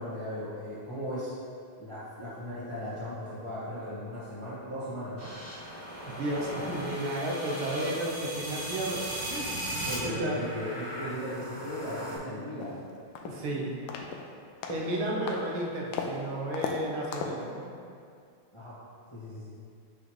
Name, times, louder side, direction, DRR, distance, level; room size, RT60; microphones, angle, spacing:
voice 1, 0.0-1.3 1.8-5.3 9.8-12.8 18.5-18.8 19.1-19.5, equal, 15° left, -11 dB, 1.3 m, -37 dB
sound 1, 5.2-12.2, right 1 dB, 40° right, 1.9 m, -38 dB
voice 2, 6.1-10.4 13.2-13.9 14.7-17.7, right 1 dB, 75° right, -3 dB, 1.7 m, -33 dB
sound 2, 12.6-12.7 13.2-13.5 13.9-14.2 14.6-14.9 15.3-15.5 15.9-16.2 16.5-16.8 17.1-17.4, left 6 dB, 85° left, 1.5 m, -35 dB
6.5 x 6.0 x 3.2 m, 2.3 s
omnidirectional pair, 2.4 m